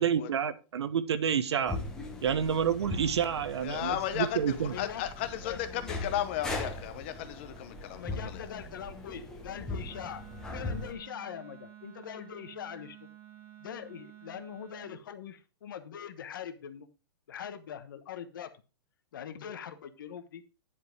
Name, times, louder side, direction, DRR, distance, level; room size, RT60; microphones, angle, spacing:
voice 1, 0.0-1.8 2.2-4.8, right 8 dB, 75° right, 1.1 m, -29 dB
sound 1, 1.7-10.9, left 2 dB, 5° left, 1.1 m, -40 dB
voice 2, 3.6-8.0 8.3-8.5, left 11 dB, 25° left, 0.8 m, -34 dB
voice 3, 4.7-5.0 5.4-5.6 7.7-13.1 13.6-16.9 17.3-18.5 19.1-20.4, left 9 dB, 50° left, 1.1 m, -42 dB
Wind instrument woodwind instrument, 9.9-15.0, right 11 dB, 15° right, 1.5 m, -51 dB
10.5 x 5.2 x 5.0 m
hypercardioid pair, 180°, 14 cm